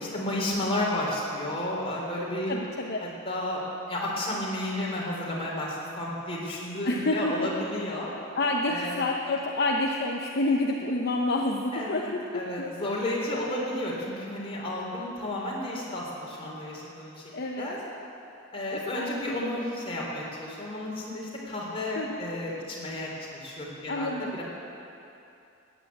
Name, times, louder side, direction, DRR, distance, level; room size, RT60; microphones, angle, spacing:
voice 1, 0.0-2.6 3.2-3.6 3.9-8.1 8.6-9.1 11.7-17.2 17.6-17.8 18.5-24.4, left 1 dB, 30° left, -4 dB, 3.7 m, -32 dB
voice 2, 2.5-3.1 6.8-7.5 8.4-12.9 17.3-17.7 18.7-19.1 21.9-22.2 23.9-24.4, left 2 dB, 50° left, 1 dB, 0.8 m, -28 dB
14.5 x 10.5 x 8.4 m, 2.8 s
head